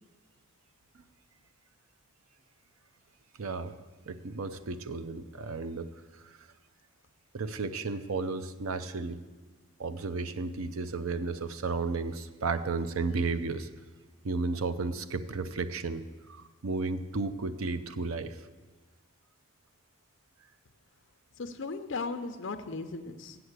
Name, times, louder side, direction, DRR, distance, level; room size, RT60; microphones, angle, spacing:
voice 1, 3.4-3.8 4.1-5.9 6.1-6.4 7.3-9.2 9.8-13.7 14.2-16.0 16.3-18.4, right 3 dB, 85° right, 11 dB, 0.6 m, -33 dB
voice 2, 21.4-23.4, left 3 dB, 60° left, 7 dB, 0.6 m, -37 dB
7.8 x 7.7 x 8.0 m, 1.3 s
head